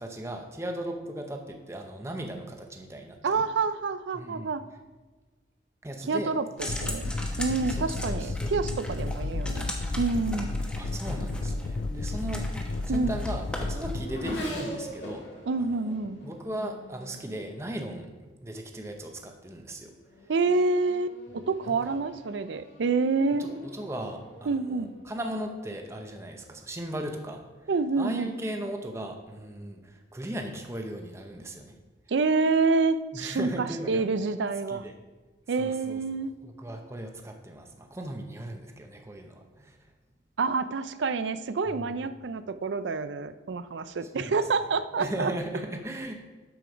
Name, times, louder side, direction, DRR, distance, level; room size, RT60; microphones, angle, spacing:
voice 1, 0.0-3.4 4.1-4.5 5.8-6.3 6.6-6.8 7.7-8.5 10.8-12.5 12.9-15.2 15.7-16.0 16.2-19.9 21.7-22.0 23.4-27.4 28.0-31.8 33.1-34.0 34.7-34.9 35.6-36.0 36.4-39.8 41.7-41.9 44.1-44.3 45.0-46.1, right 1 dB, 15° right, 4 dB, 0.7 m, -37 dB
voice 2, 3.2-4.6 6.1-10.5 12.9-13.1 15.5-16.2 20.3-23.5 24.5-24.9 27.7-28.3 32.1-34.8 35.5-36.3 40.4-45.3, right 4 dB, 75° right, 12 dB, 0.4 m, -28 dB
sound 1, 6.6-14.0, equal, 5° left, 0.9 m, -39 dB
sound 2, 6.7-14.1, left 3 dB, 55° left, 0.4 m, -32 dB
Race car auto racing / Accelerating revving vroom, 12.8-18.2 19.1-19.4 19.9-25.8, equal, 70° left, 2.3 m, -43 dB
7.8 x 7.0 x 5.1 m, 1.3 s
head